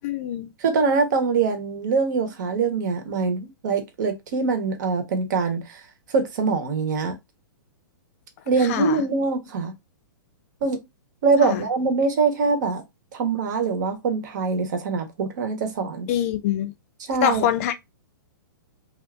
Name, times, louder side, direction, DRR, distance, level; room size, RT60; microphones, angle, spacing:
voice 1, 0.0-0.5 8.7-9.0 11.4-11.6 16.1-16.7 17.2-17.7, left 11 dB, 40° left, 0.5 m, -24 dB
voice 2, 0.6-5.8 6.1-7.2 8.5-9.7 10.6-10.8 11.2-12.8 13.1-16.1 17.1-17.4, right 4 dB, 55° right, 1.0 m, -23 dB
2.7 x 2.4 x 3.4 m
hypercardioid pair, 140°, 12 cm